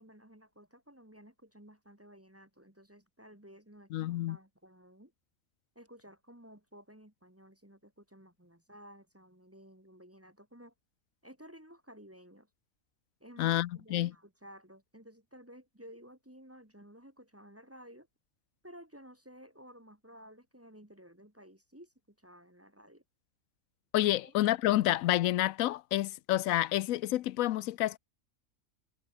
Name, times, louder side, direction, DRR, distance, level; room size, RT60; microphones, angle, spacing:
voice 1, 0.0-5.1 5.7-10.7 11.2-12.5 13.2-18.1 18.6-23.0 24.2-24.3, equal, 10° right, 1.7 m, -54 dB
voice 2, 3.9-4.4 13.4-14.1 23.9-28.0, left 14 dB, 85° left, 1.0 m, -29 dB
omnidirectional pair, 1.4 m